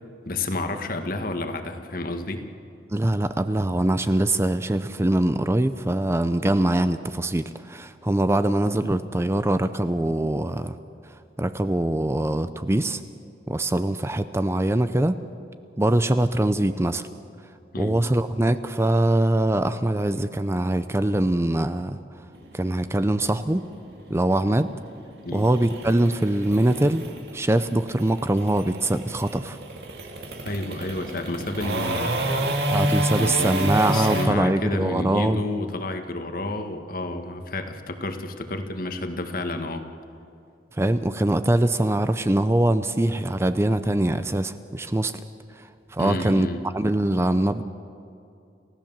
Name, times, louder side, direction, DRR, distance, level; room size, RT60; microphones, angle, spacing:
voice 1, 0.3-2.5 17.7-18.0 25.2-25.5 30.4-32.6 33.1-39.8 46.0-46.6, left 2 dB, 55° left, 7 dB, 1.6 m, -30 dB
voice 2, 2.9-10.8 11.4-13.0 13.5-15.2 15.8-17.1 17.8-22.0 22.5-23.6 24.1-24.7 25.3-27.0 27.3-29.6 32.7-35.4 40.7-45.1 45.9-46.5 46.7-47.6, right 1 dB, 15° right, 11 dB, 0.5 m, -23 dB
sound 1, 22.3-34.3, right 1 dB, 65° right, 2.5 m, -29 dB
29.5 x 15.5 x 7.4 m, 2.6 s
head